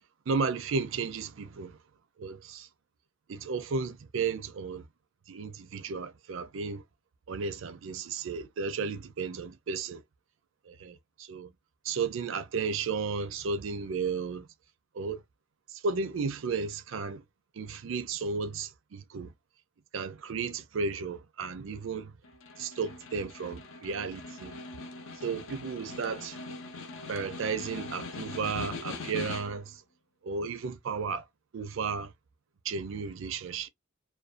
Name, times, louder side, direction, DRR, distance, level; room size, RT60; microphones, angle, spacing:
voice 1, 0.3-1.8 2.2-2.7 3.3-4.9 5.3-6.8 7.3-10.0 10.7-11.5 11.8-14.5 14.9-15.2 15.7-17.2 17.6-19.3 19.9-22.1 22.6-24.6 25.2-26.4 27.1-29.8 30.2-31.2 31.5-32.1 32.6-33.7, right 5 dB, 70° right, 0.4 m, -34 dB
Snare drum, 22.2-29.7, left 3 dB, 75° left, 0.7 m, -42 dB
2.5 x 2.2 x 2.4 m
head